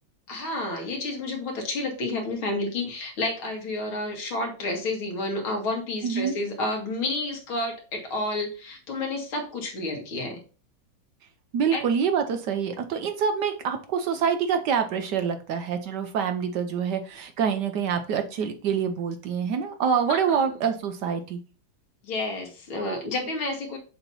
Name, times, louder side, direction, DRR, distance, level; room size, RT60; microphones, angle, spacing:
voice 1, 0.3-10.4 11.7-11.8 20.1-20.4 22.0-23.8, left 2 dB, 80° left, 2 dB, 2.5 m, -30 dB
voice 2, 6.0-6.3 11.5-21.4, right 7 dB, 70° right, 7 dB, 1.1 m, -26 dB
6.9 x 3.0 x 5.3 m, 0.36 s
omnidirectional pair, 2.2 m